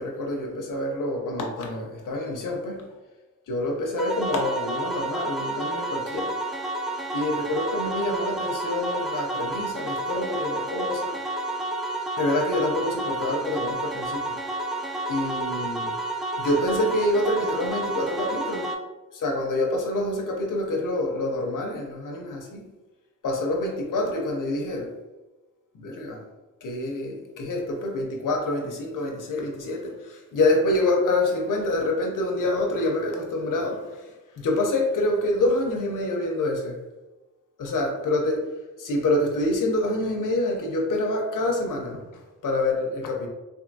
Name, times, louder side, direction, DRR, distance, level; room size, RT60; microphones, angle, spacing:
voice 1, 0.0-2.9 3.5-6.4 7.1-11.2 12.2-14.4 15.1-16.0 16.4-18.7 19.1-22.7 23.2-24.9 25.7-26.2 26.6-36.8 37.6-38.4 38.8-43.3, left 1 dB, 80° left, 1 dB, 0.6 m, -26 dB
sound 1, 4.0-18.7, right 2 dB, ahead, 0.4 m, -30 dB
3.3 x 2.5 x 2.6 m, 1.1 s
wide cardioid pair, 90°, 32 cm